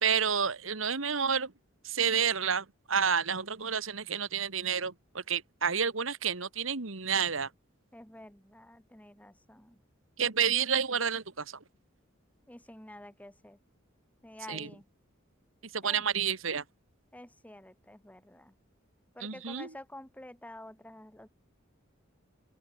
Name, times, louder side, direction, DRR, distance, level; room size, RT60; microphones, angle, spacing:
voice 1, 0.0-1.5 1.8-7.5 10.2-11.6 14.5-14.7 15.6-16.6 19.2-19.7, right 7 dB, 75° right, 1.7 m, -30 dB
voice 2, 7.9-9.8 12.5-13.6 14.2-14.9 15.8-16.0 17.1-18.6 19.1-21.3, left 1 dB, 5° left, 2.8 m, -49 dB
open air
head